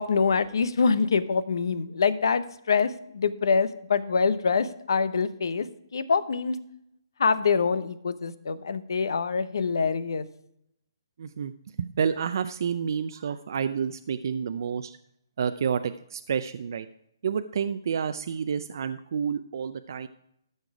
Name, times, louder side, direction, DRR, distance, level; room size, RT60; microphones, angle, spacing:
voice 1, 0.0-5.7 5.9-6.6 7.2-10.2, left 5 dB, 70° left, 14 dB, 0.9 m, -25 dB
voice 2, 11.2-11.5 11.8-15.0 15.4-16.9 17.2-20.1, right 7 dB, 55° right, 9 dB, 0.5 m, -29 dB
13.5 x 6.7 x 4.8 m, 0.75 s
hypercardioid pair, 155°, 2 cm